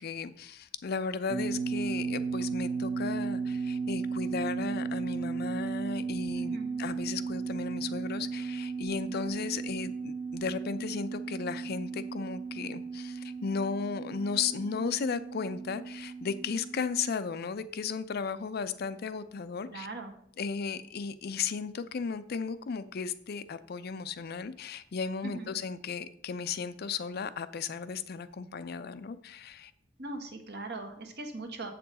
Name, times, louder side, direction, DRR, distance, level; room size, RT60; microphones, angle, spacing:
voice 1, 0.0-19.9 20.4-29.7, left 5 dB, 55° left, 0.4 m, -35 dB
sound 1, 1.3-17.1, right 5 dB, 45° right, 0.7 m, -35 dB
voice 2, 6.3-6.7 19.7-20.1 25.2-25.5 30.0-31.7, right 2 dB, 60° right, 1.2 m, -40 dB
7.4 x 6.8 x 4.0 m
head